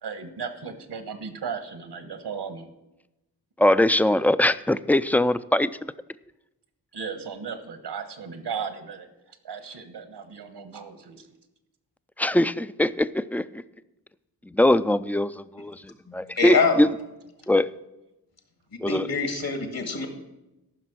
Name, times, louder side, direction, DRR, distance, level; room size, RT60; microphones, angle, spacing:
voice 1, 0.0-2.7 6.9-9.1 9.4-11.3, right 6 dB, 80° right, 9 dB, 1.3 m, -36 dB
voice 2, 3.6-5.9 12.2-13.6 14.5-16.9 17.5-17.7 18.8-19.1, left 1 dB, 5° left, 15 dB, 0.3 m, -22 dB
voice 3, 16.1-16.9 18.9-20.1, left 4 dB, 65° left, 5 dB, 2.1 m, -25 dB
13.5 x 5.9 x 6.1 m, 0.96 s
cardioid pair, 60°, 40 cm